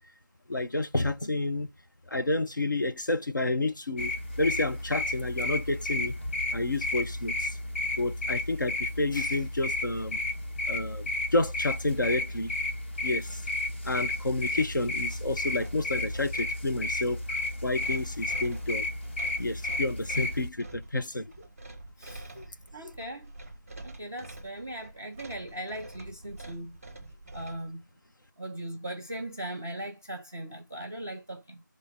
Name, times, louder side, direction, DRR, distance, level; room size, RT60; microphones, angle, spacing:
voice 1, 0.5-1.7 2.1-4.1 4.4-6.2 6.5-7.6 8.0-10.2 10.7-12.5 13.0-13.4 13.8-17.2 17.6-18.9 19.4-21.3 22.4-22.5 22.8-22.9, left 2 dB, 70° left, 1.1 m, -30 dB
sound 1, 4.0-20.5, left 2 dB, 35° left, 1.2 m, -32 dB
sound 2, 14.1-27.7, right 2 dB, 10° right, 0.8 m, -47 dB
voice 2, 22.0-22.4 22.7-23.3 23.8-26.8 27.3-27.8 28.4-31.6, right 1 dB, 10° left, 0.4 m, -39 dB
7.1 x 3.5 x 3.9 m
figure-of-eight pair, 170°, 11 cm